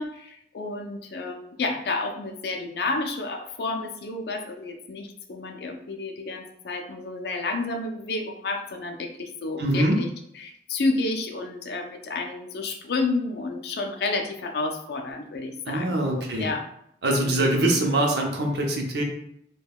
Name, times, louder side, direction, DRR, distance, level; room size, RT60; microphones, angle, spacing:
voice 1, 0.0-10.1 10.3-16.7 17.2-17.7, left 3 dB, 65° left, 4 dB, 0.4 m, -30 dB
voice 2, 9.6-10.0 15.7-16.5 17.0-19.0, right 1 dB, 70° right, 1 dB, 0.6 m, -23 dB
2.2 x 2.2 x 3.4 m, 0.73 s
head